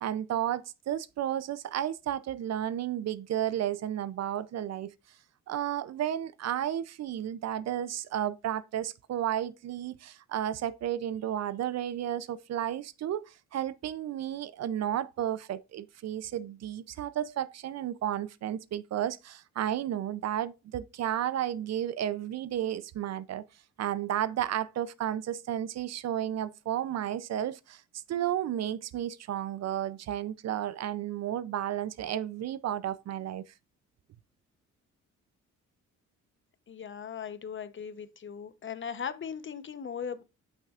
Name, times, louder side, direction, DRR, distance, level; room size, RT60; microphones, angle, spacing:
voice 1, 0.0-4.9 5.5-23.4 23.8-33.5, right 11 dB, 60° right, 0.6 m, -32 dB
voice 2, 36.7-40.2, left 7 dB, 40° left, 0.9 m, -38 dB
8.1 x 6.0 x 2.5 m
cardioid pair, 90°, 30 cm